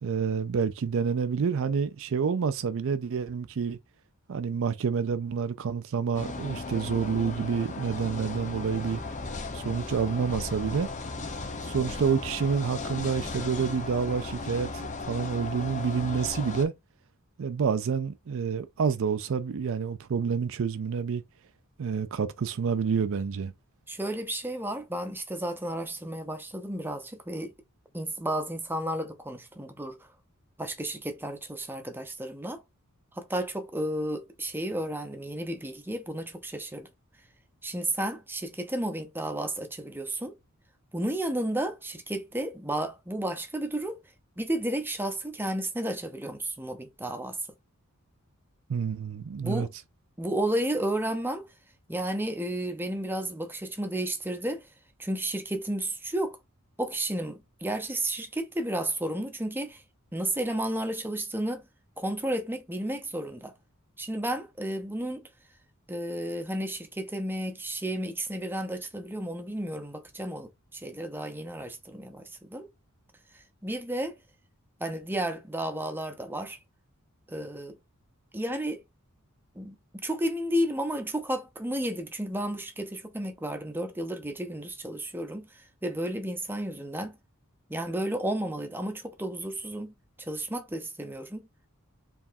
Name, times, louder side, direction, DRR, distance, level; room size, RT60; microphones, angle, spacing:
voice 1, 0.0-3.8 4.3-9.0 9.5-10.9 11.6-16.7 17.4-21.2 21.8-23.5 48.7-49.7, right 6 dB, 65° right, 0.4 m, -28 dB
sound 1, 6.1-16.6, left 3 dB, 35° left, 0.8 m, -36 dB
voice 2, 23.9-27.5 27.9-30.0 30.6-32.6 33.1-36.9 37.6-40.3 40.9-44.0 44.4-47.4 49.4-49.7 50.2-51.5 51.9-54.6 55.0-56.4 56.8-59.8 60.1-61.6 62.0-63.5 64.0-65.2 65.9-72.7 73.3-74.2 74.8-76.6 77.3-77.7 78.3-78.8 79.5-79.7 80.0-85.5 85.8-87.2 87.7-89.9 90.2-91.4, right 1 dB, 10° right, 0.7 m, -32 dB
4.7 x 3.3 x 2.7 m
head